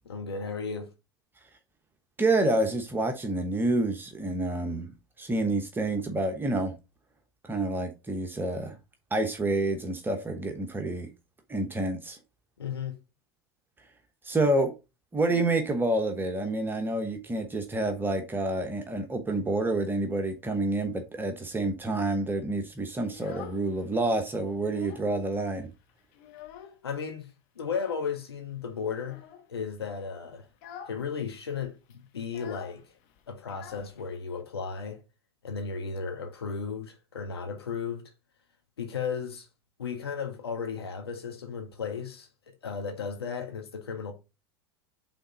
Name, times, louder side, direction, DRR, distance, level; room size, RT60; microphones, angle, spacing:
voice 1, 0.0-0.9 12.6-13.0 26.8-27.3 27.5-29.2 29.5-30.5 30.9-32.8 33.3-35.0 35.4-38.1 38.8-39.5 39.8-44.1, left 6 dB, 80° left, 1.6 m, -35 dB
voice 2, 2.2-4.9 5.2-6.7 7.5-8.8 9.1-11.1 11.5-12.2 14.2-14.7 15.1-25.7, right 2 dB, 15° right, 1.0 m, -28 dB
Child speech kid speaking, 23.0-24.0 24.4-25.2 25.5-25.6 25.9-27.0 27.6-28.1 29.0-29.5 29.9-30.1 30.5-31.0 31.3-31.4 31.6-34.4, left 9 dB, 55° left, 1.2 m, -47 dB
5.6 x 3.8 x 5.0 m
hypercardioid pair, 90°, 13 cm